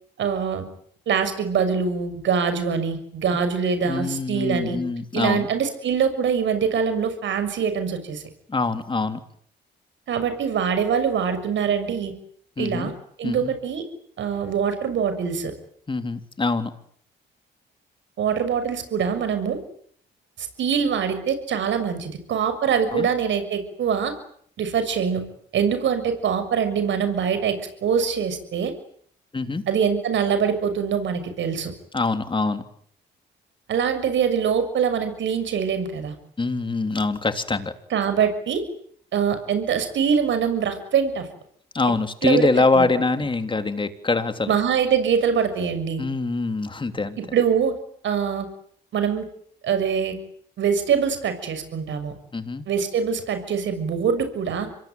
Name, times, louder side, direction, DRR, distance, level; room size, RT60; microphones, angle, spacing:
voice 1, 0.2-0.7 1.1-4.8 5.1-8.2 10.1-12.1 12.6-12.9 13.2-13.8 14.2-15.5 18.2-19.6 20.4-24.1 24.6-25.2 25.5-28.7 29.7-31.7 33.7-36.1 37.9-38.6 39.1-41.3 42.2-42.5 42.7-42.9 44.5-46.0 47.3-47.7 48.0-48.5 48.9-49.2 49.6-50.2 50.6-52.1 52.7-54.7, right 7 dB, 70° right, 10 dB, 6.7 m, -23 dB
voice 2, 3.8-5.5 8.5-9.2 12.6-12.9 13.2-13.5 15.9-16.7 22.9-23.1 29.3-29.6 31.9-32.6 36.4-37.7 41.7-44.5 46.0-47.2 52.3-52.7, left 3 dB, 25° left, 9 dB, 3.3 m, -24 dB
26.5 x 22.0 x 9.5 m, 0.64 s
cardioid pair, 90°, 20 cm